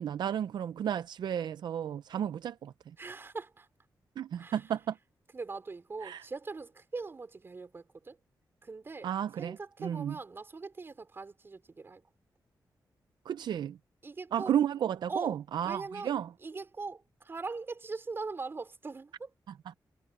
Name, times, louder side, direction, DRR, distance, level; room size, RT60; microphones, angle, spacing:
voice 1, 0.0-2.9 4.2-5.0 6.0-6.2 9.0-10.2 13.3-13.8 14.3-16.3, right 9 dB, 80° right, 0.4 m, -33 dB
voice 2, 3.0-3.7 4.4-4.6 5.3-8.2 8.6-9.1 9.4-12.0 14.0-14.5 15.1-16.1 16.4-19.3, right 4 dB, 30° right, 4.8 m, -41 dB
wide cardioid pair, 160°, 7 cm